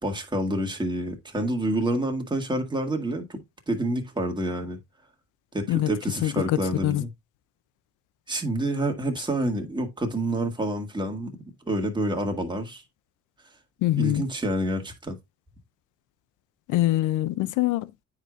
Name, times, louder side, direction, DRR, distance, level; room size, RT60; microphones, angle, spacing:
voice 1, 0.0-3.4 3.7-4.8 5.5-7.1 8.3-11.4 11.7-12.8 14.0-15.2, right 1 dB, 15° right, 1.8 m, -28 dB
voice 2, 6.2-7.0 13.8-14.2 16.7-17.9, left 15 dB, 85° left, 0.5 m, -24 dB
9.4 x 4.8 x 2.4 m
cardioid pair, 90°, 30 cm